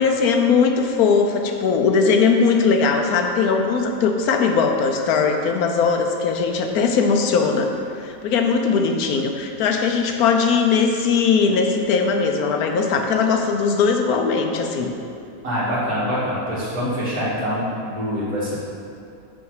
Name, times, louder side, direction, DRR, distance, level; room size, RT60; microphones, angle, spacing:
voice 1, 0.0-7.7 8.0-14.9, left 5 dB, 75° left, 4 dB, 1.1 m, -19 dB
voice 2, 15.4-18.5, equal, 80° right, -9 dB, 2.6 m, -24 dB
6.3 x 5.8 x 4.8 m, 2.6 s
omnidirectional pair, 1.6 m